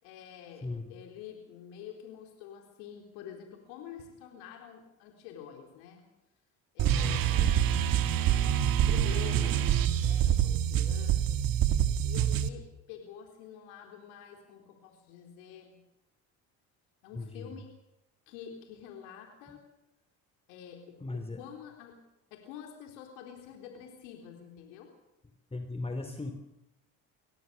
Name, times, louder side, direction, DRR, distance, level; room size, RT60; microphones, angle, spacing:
voice 1, 0.0-6.0 6.7-11.4 12.0-15.8 17.0-17.7 18.3-19.6 20.5-22.0 22.3-24.9, left 8 dB, 85° left, 2 dB, 4.1 m, -47 dB
voice 2, 0.6-0.9 6.8-7.6 8.2-8.5 17.1-17.6 21.0-21.4 25.5-26.3, left 2 dB, 15° left, 7 dB, 3.2 m, -37 dB
sound 1, 6.8-12.5, right 10 dB, 65° right, 1.9 m, -26 dB
25.0 x 17.5 x 7.0 m, 0.89 s
supercardioid pair, 75°, 37 cm